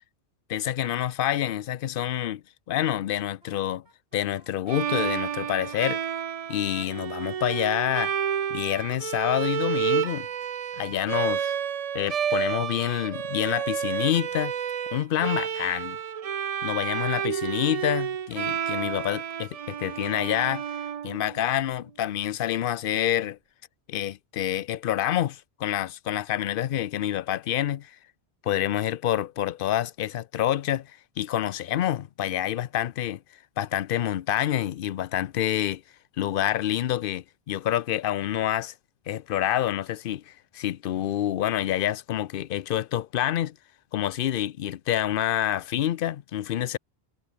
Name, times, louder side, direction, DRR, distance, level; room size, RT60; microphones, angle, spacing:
voice 1, 0.5-2.4 2.7-3.8 4.1-6.0 6.5-8.1 8.5-10.3 10.8-11.5 11.9-14.5 14.9-16.0 16.6-20.6 21.0-23.4 23.9-28.0 28.4-33.2 33.6-35.8 36.2-38.7 39.1-43.6 43.9-46.8, left 11 dB, 60° left, 0.7 m, -27 dB
Wind instrument woodwind instrument, 3.4-6.1 6.5-8.9, right 1 dB, 85° right, 7.3 m, -60 dB
Bowed string instrument, 4.7-21.6, right 8 dB, 50° right, 0.5 m, -30 dB
omnidirectional pair, 1.1 m